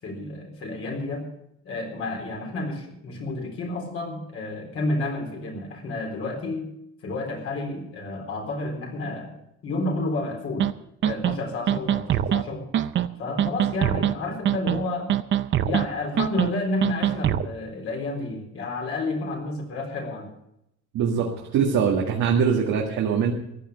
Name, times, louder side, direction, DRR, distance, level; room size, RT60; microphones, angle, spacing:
voice 1, 0.0-1.3 1.6-6.7 7.0-9.3 9.6-10.7 11.0-12.7 13.2-15.1 15.6-20.3, left 2 dB, 50° left, 2 dB, 3.9 m, -30 dB
sound 1, 10.6-10.7 11.0-11.3 11.7-12.4 12.7-13.1 13.4-14.1 14.4-14.8 15.1-15.8 16.2-16.5 16.8-17.5, right 11 dB, 40° right, 0.6 m, -23 dB
voice 2, 20.9-23.3, right 6 dB, 75° right, -1 dB, 2.0 m, -22 dB
14.5 x 10.0 x 6.8 m, 0.80 s
cardioid pair, 175°, 29 cm